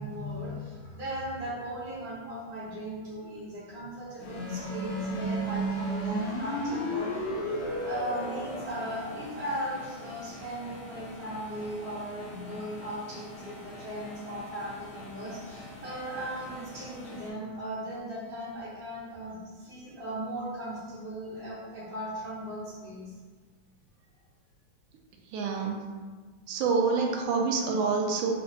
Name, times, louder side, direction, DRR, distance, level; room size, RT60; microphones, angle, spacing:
voice 1, 0.0-7.1 7.4-23.1, right 1 dB, 55° right, -8 dB, 0.6 m, -38 dB
sound 1, 4.2-17.3, equal, 70° left, 1.2 m, -36 dB
voice 2, 25.3-25.8 26.5-28.3, right 4 dB, 80° right, 1 dB, 1.3 m, -27 dB
6.0 x 2.1 x 2.7 m, 1.4 s
omnidirectional pair, 2.4 m